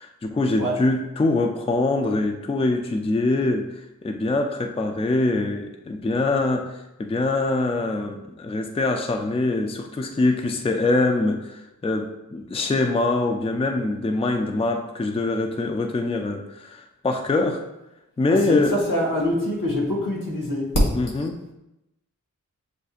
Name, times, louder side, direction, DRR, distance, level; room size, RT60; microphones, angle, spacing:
voice 1, 0.0-17.6 18.2-18.8 20.9-21.4, left 2 dB, 20° left, 4 dB, 0.4 m, -24 dB
voice 2, 18.3-20.7, left 1 dB, 80° left, -2 dB, 1.3 m, -24 dB
7.2 x 2.6 x 2.4 m, 0.91 s
wide cardioid pair, 65°, 32 cm